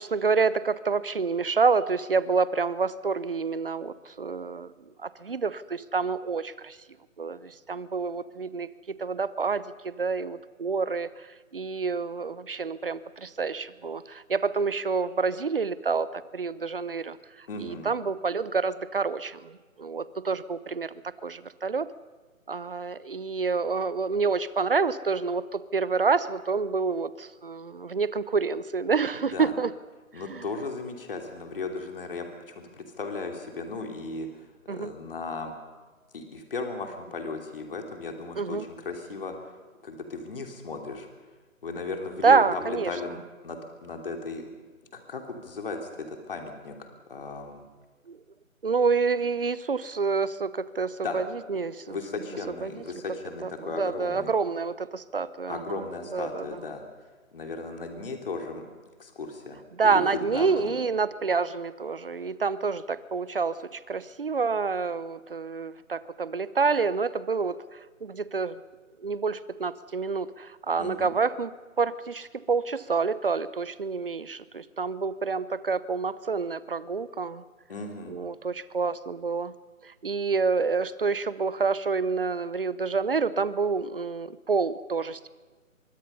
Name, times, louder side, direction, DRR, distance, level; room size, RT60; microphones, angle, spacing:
voice 1, 0.0-4.7 5.0-6.8 7.2-11.1 11.5-17.2 17.6-19.5 19.8-20.9 21.2-21.9 22.5-29.7 30.3-30.4 34.7-34.9 38.4-38.7 42.2-42.9 48.1-48.2 48.6-51.2 51.5-52.0 52.6-52.8 53.4-53.5 53.8-55.8 56.1-56.4 59.8-68.6 69.0-71.5 71.8-77.4 78.1-79.5 80.0-85.3, right 4 dB, 40° right, 17 dB, 0.8 m, -28 dB
voice 2, 17.5-17.9 29.3-29.5 30.1-35.5 36.1-39.5 39.8-41.1 41.6-43.2 43.4-44.4 44.9-47.6 51.0-51.2 51.9-54.3 55.5-56.8 57.3-58.6 59.0-60.7 70.8-71.1 77.7-78.2, left 3 dB, 40° left, 3 dB, 3.0 m, -36 dB
24.0 x 23.5 x 5.6 m, 1.3 s
figure-of-eight pair, 165°, 41 cm